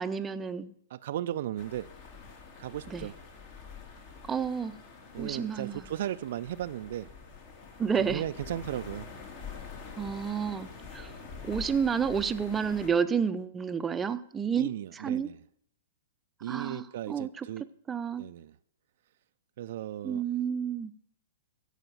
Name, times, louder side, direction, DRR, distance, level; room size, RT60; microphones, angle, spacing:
voice 1, 0.0-0.7 2.9-3.1 4.3-4.8 5.2-5.8 7.8-8.2 10.0-11.1 11.4-15.3 16.5-17.5 17.9-18.2 20.0-20.9, right 7 dB, 15° right, 0.7 m, -30 dB
voice 2, 0.9-1.9 2.6-3.1 5.1-7.1 8.0-9.1 14.6-15.4 16.4-17.7 18.2-18.5 19.6-20.2, right 12 dB, 60° right, 0.5 m, -36 dB
sound 1, 1.6-12.9, left 5 dB, 50° left, 3.1 m, -46 dB
14.5 x 5.0 x 9.2 m
hypercardioid pair, 120°, 0 cm